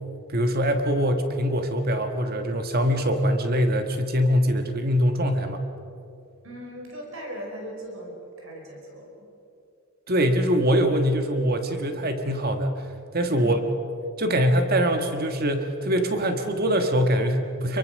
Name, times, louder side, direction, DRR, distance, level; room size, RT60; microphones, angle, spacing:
voice 1, 0.3-5.6 10.1-12.9 13.1-13.6 14.2-17.8, equal, 45° right, 6 dB, 1.5 m, -23 dB
voice 2, 6.4-9.3 13.4-13.6, equal, 60° right, 0 dB, 4.8 m, -39 dB
26.5 x 24.0 x 6.6 m, 2.7 s
head